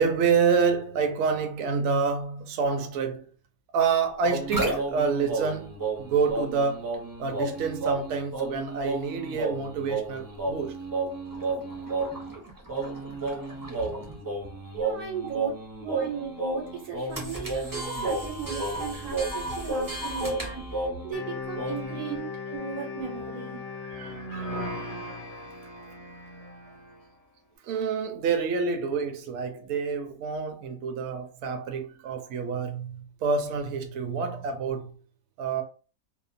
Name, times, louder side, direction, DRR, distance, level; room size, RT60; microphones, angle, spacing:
voice 1, 0.0-3.3 3.7-5.7 6.0-6.8 7.2-10.8 22.1-22.2 23.8-25.1 27.6-34.9 35.4-35.6, right 5 dB, 65° right, 0.8 m, -28 dB
sound 1, 4.2-21.2 21.6-22.0, right 2 dB, 30° right, 0.4 m, -32 dB
voice 2, 14.7-23.6, right 6 dB, 90° right, 1.3 m, -37 dB
sound 2, 21.1-27.1, left 3 dB, 70° left, 0.3 m, -37 dB
2.8 x 2.1 x 2.5 m
omnidirectional pair, 1.5 m